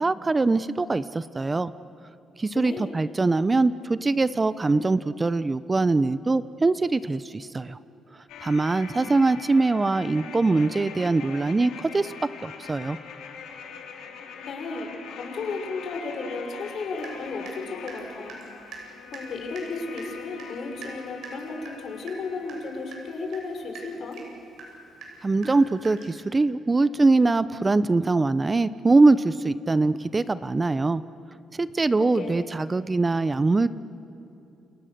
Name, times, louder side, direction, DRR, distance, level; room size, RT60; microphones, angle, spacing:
voice 1, 0.0-1.7 2.4-7.8 8.4-12.1 12.4-13.0 25.2-31.0 31.6-33.7, right 3 dB, 25° right, 15 dB, 0.7 m, -22 dB
sound 1, 8.3-23.3 23.6-23.7, left 6 dB, 85° left, 3.7 m, -43 dB
voice 2, 14.4-18.4 19.1-24.2 32.0-32.5, left 3 dB, 60° left, 3 dB, 5.2 m, -34 dB
Water tap faucet / Drip, 17.0-17.6 17.9-26.2, right 4 dB, 70° right, 7.8 m, -44 dB
29.5 x 29.0 x 6.7 m, 2.7 s
cardioid pair, 90°, 0 cm